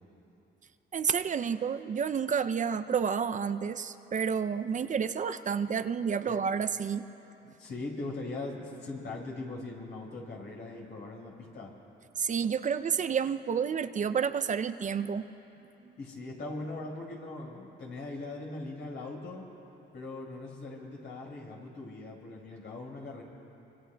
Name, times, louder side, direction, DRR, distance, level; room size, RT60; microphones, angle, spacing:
voice 1, 0.9-7.0 12.2-15.3 15.8-15.9, right 7 dB, 40° right, 11 dB, 0.5 m, -30 dB
voice 2, 7.4-11.7 16.0-19.4 19.9-23.2, left 2 dB, 60° left, -1 dB, 4.7 m, -40 dB
25.5 x 25.0 x 2.3 m, 3.0 s
cardioid pair, 90°, 20 cm